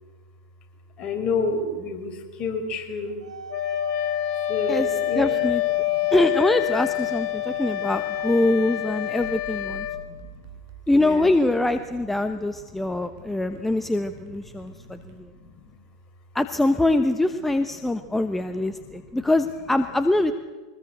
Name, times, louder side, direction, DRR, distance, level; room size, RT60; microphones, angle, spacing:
voice 1, 1.0-3.2 4.5-6.1 7.3-8.0 9.1-9.2 9.6-10.5 10.9-11.3 12.2-12.3 12.7-14.0 14.5-15.8 17.8-19.2, left 3 dB, 35° left, 4 dB, 4.9 m, -33 dB
sound 1, 3.0-9.3, right 6 dB, 90° right, 2.0 m, -40 dB
Wind instrument woodwind instrument, 3.5-10.0, left 14 dB, 50° left, 2.5 m, -27 dB
voice 2, 5.2-5.6 6.1-9.9 10.9-15.3 16.3-20.3, left 2 dB, 5° left, 9 dB, 1.1 m, -23 dB
sound 2, 9.2-15.6, right 8 dB, 55° right, 4.8 m, -47 dB
23.5 x 20.5 x 8.1 m, 1.3 s
hypercardioid pair, 105°, 3 cm